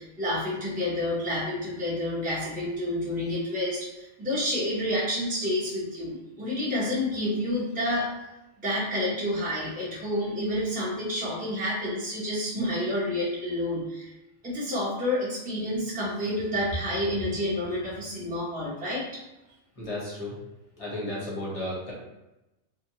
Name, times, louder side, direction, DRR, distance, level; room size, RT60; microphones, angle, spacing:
voice 1, 0.0-8.2 8.6-14.1 14.4-19.2, left 1 dB, 10° right, -7 dB, 0.6 m, -29 dB
voice 2, 19.8-20.4 20.8-21.9, left 1 dB, 30° left, -6 dB, 0.8 m, -33 dB
2.6 x 2.2 x 2.8 m, 0.97 s
omnidirectional pair, 1.4 m